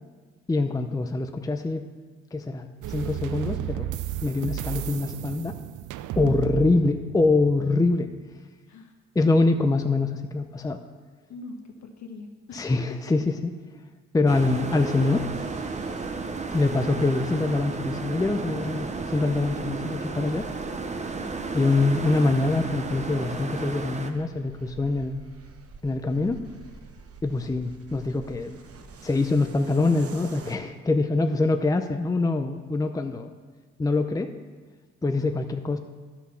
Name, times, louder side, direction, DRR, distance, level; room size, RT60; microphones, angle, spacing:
voice 1, 0.5-1.8 2.3-3.9 4.2-5.5 6.2-8.1 9.2-10.8 12.5-13.5 14.1-15.3 16.5-20.5 21.5-25.2 25.8-26.4 27.2-28.6 29.0-33.3 33.8-34.3 35.0-35.8, left 3 dB, 10° left, 6 dB, 0.6 m, -24 dB
sound 1, 2.8-8.3, right 13 dB, 80° right, 0.5 m, -33 dB
voice 2, 11.3-12.8 21.1-21.6, left 3 dB, 65° left, 3 dB, 1.7 m, -42 dB
sound 2, 14.3-24.1, right 4 dB, 25° right, 0.8 m, -33 dB
sound 3, 15.3-30.6, right 4 dB, 50° right, 1.0 m, -48 dB
11.0 x 6.2 x 5.7 m, 1.4 s
cardioid pair, 90°, 30 cm